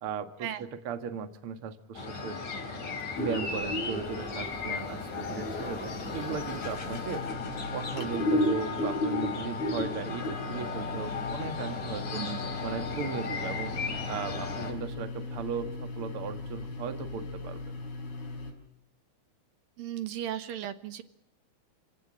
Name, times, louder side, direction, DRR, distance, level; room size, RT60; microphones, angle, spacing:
voice 1, 0.0-0.5 0.8-2.4 3.2-7.3 7.7-12.2 12.6-13.7 14.1-17.8, right 6 dB, 45° right, 9 dB, 2.0 m, -37 dB
sound 1, 1.9-14.7, left 4 dB, 50° left, 5.3 m, -36 dB
sound 2, 3.1-18.5, left 1 dB, 80° left, 7.1 m, -36 dB
voice 2, 19.8-21.0, right 11 dB, 70° right, 11 dB, 2.9 m, -36 dB
29.0 x 18.0 x 8.8 m, 0.75 s
omnidirectional pair, 4.4 m